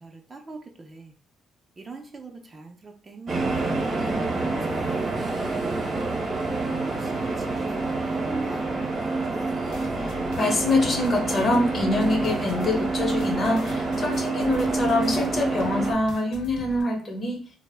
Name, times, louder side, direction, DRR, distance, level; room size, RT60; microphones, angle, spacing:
voice 1, 0.0-1.1 1.8-6.2 6.8-9.3 9.6-9.8, right 3 dB, 30° right, 3 dB, 0.5 m, -43 dB
sound 1, 3.3-15.9, right 3 dB, 50° right, 0.8 m, -27 dB
sound 2, 9.7-16.8, left 2 dB, 85° left, 0.5 m, -41 dB
voice 2, 10.0-17.4, left 2 dB, 40° left, 2 dB, 0.8 m, -25 dB
sound 3, 10.3-12.9, right 3 dB, 90° right, 0.5 m, -39 dB
2.0 x 2.0 x 3.3 m, 0.39 s
cardioid pair, 90°, 0 cm